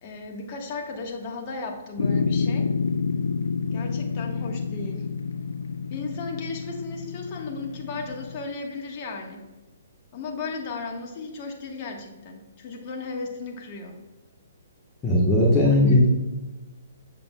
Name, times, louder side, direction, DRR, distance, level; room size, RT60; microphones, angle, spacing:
voice 1, 0.0-2.7 3.7-5.1 5.9-9.4 10.1-14.0 15.9-16.0, left 3 dB, 40° left, 2 dB, 1.4 m, -35 dB
sound 1, 2.0-8.4, left 5 dB, 80° left, 0.3 m, -28 dB
voice 2, 15.0-16.1, left 1 dB, 15° left, -4 dB, 1.2 m, -18 dB
7.7 x 6.7 x 2.3 m, 1.1 s
hypercardioid pair, 135°, 0 cm